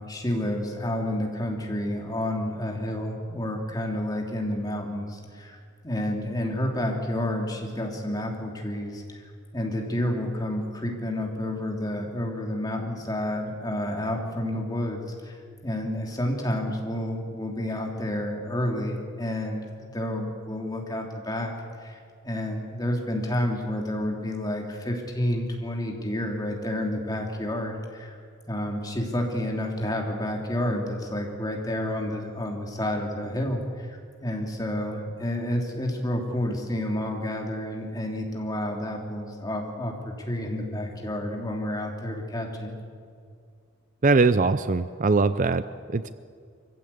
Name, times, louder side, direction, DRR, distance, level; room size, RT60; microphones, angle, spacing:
voice 1, 0.0-5.6 5.8-9.2 9.5-15.4 15.6-19.6 19.9-21.5 21.8-28.2 28.5-42.7, left 1 dB, 20° left, 0 dB, 3.0 m, -30 dB
voice 2, 44.0-45.6 45.9-46.1, right 3 dB, 40° right, 13 dB, 0.5 m, -21 dB
24.5 x 15.5 x 8.5 m, 2.2 s
head